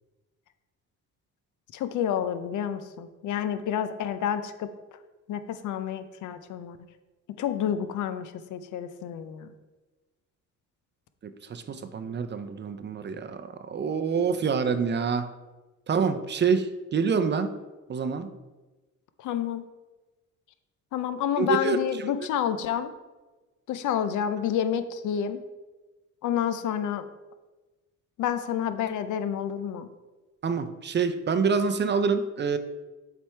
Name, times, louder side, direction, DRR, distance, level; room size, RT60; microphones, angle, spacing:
voice 1, 1.7-4.7 5.3-6.8 7.4-9.5 19.2-19.6 20.9-22.9 23.7-25.4 26.2-27.1 28.2-29.9, left 9 dB, 75° left, 10 dB, 0.6 m, -29 dB
voice 2, 11.2-15.3 15.9-17.5 17.9-18.3 21.4-21.8 30.4-32.6, right 5 dB, 35° right, 9 dB, 0.5 m, -26 dB
7.3 x 3.5 x 4.5 m, 1.2 s
cardioid pair, 90°, 30 cm